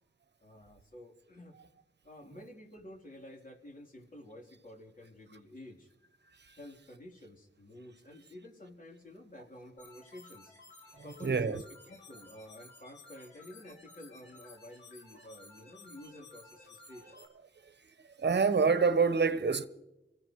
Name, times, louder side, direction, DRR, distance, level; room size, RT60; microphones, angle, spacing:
voice 1, 0.4-1.6 2.0-5.9 6.5-10.6 11.0-11.6 11.9-17.2, left 1 dB, 40° left, 3.7 m, -51 dB
sound 1, 9.8-17.3, left 3 dB, 65° left, 6.1 m, -55 dB
voice 2, 10.9-11.6 18.2-19.7, right 5 dB, 55° right, 1.1 m, -27 dB
25.0 x 17.0 x 3.2 m
cardioid pair, 50°, 21 cm